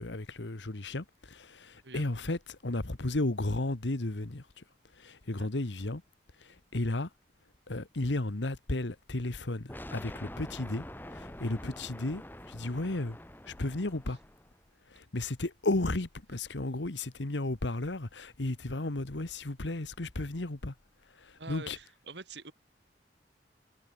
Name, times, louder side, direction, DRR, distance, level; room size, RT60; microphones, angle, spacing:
voice 1, 0.0-4.6 5.0-6.0 6.4-7.1 7.7-10.8 11.1-12.2 12.5-13.2 13.5-14.2 14.9-20.7 21.1-21.8, left 2 dB, 85° left, 1.4 m, -34 dB
sound 1, 9.7-14.6, left 1 dB, 10° left, 2.3 m, -46 dB
voice 2, 21.4-22.5, right 3 dB, 75° right, 2.5 m, -45 dB
head